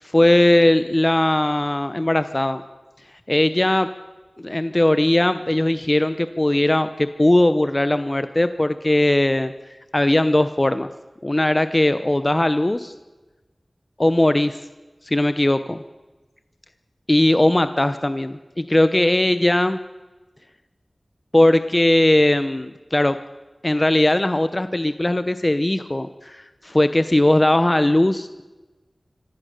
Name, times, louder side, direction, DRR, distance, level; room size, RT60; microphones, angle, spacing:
voice 1, 0.0-2.6 3.3-3.9 4.4-9.5 9.9-10.9 11.2-12.9 14.0-14.6 15.0-15.8 17.1-19.8 21.3-23.2 23.6-28.4, left 1 dB, 30° left, 11 dB, 0.8 m, -19 dB
24.5 x 16.5 x 6.7 m, 1.2 s
wide cardioid pair, 50°, 0 cm